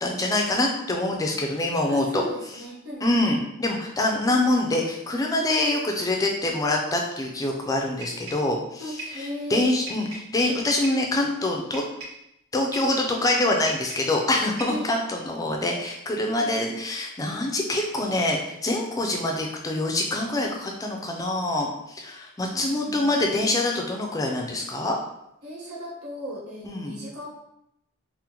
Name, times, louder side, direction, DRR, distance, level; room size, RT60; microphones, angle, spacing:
voice 1, 0.0-2.2 3.0-11.8 12.5-25.0 26.7-27.0, left 2 dB, 15° left, 1 dB, 0.3 m, -25 dB
voice 2, 1.9-3.4 8.8-10.3 14.7-14.9 16.4-16.8 22.5-23.1 25.4-27.3, equal, 90° right, -6 dB, 1.1 m, -37 dB
sound 1, 8.0-8.5 9.0-9.2 9.9-10.3 10.8-11.1 11.7-12.2 12.7-13.0 13.7-14.2 14.6-14.9, right 2 dB, 70° right, 1.4 m, -39 dB
3.6 x 2.0 x 2.9 m, 0.82 s
head